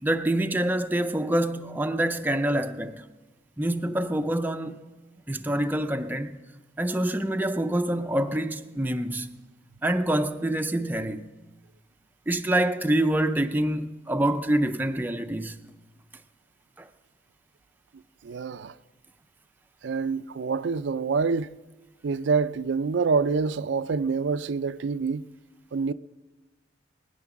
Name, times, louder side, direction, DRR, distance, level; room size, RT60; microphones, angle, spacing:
voice 1, 0.0-3.1 3.6-4.8 5.3-6.4 6.8-9.3 9.8-11.3 12.3-15.6 16.8-16.9, right 1 dB, 10° right, 0.5 m, -26 dB
voice 2, 18.2-18.7 19.8-21.6 22.0-25.2 25.7-25.9, right 5 dB, 70° right, 0.4 m, -26 dB
20.5 x 10.0 x 5.9 m
head